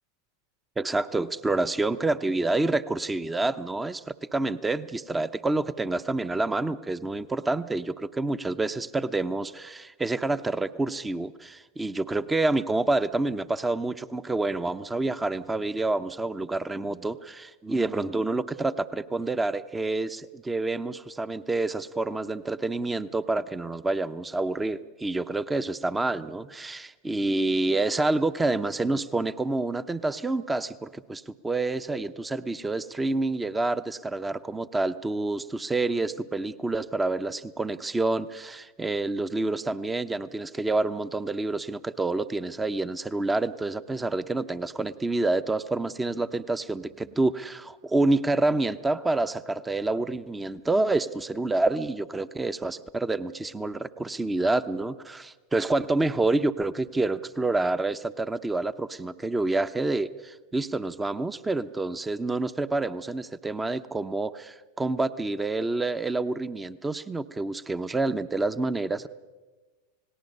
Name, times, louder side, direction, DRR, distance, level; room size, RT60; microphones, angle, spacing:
voice 1, 0.8-69.1, right 2 dB, 15° right, 13 dB, 0.8 m, -28 dB
29.0 x 19.0 x 5.4 m, 1.2 s
hypercardioid pair, 95°, 0 cm